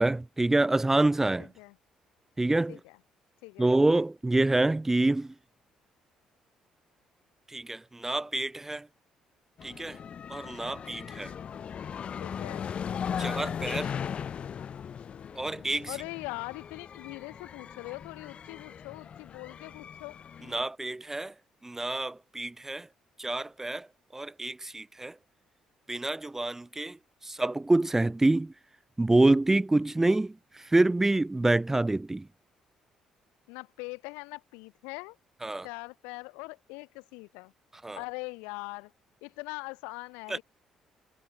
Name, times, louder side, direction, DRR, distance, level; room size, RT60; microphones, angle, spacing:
voice 1, 0.0-1.5 2.4-2.8 3.6-5.3 7.5-8.9 9.6-10.0 10.3-11.3 13.2-13.9 15.3-15.9 20.5-21.3 21.6-22.9 23.2-23.9 24.1-25.1 25.9-27.0 27.2-28.5 29.0-32.3 35.4-35.6 37.8-38.0 40.3-40.4, right 2 dB, 15° right, 0.8 m, -27 dB
voice 2, 1.4-1.8 2.7-3.0 3.4-3.7 12.2-12.7 15.9-20.2 33.5-35.2 35.6-37.5 38.0-38.9 39.2-40.4, left 30 dB, 70° left, 7.4 m, -41 dB
sound 1, 9.6-20.6, left 7 dB, 45° left, 3.6 m, -38 dB
figure-of-eight pair, 45°, 3 cm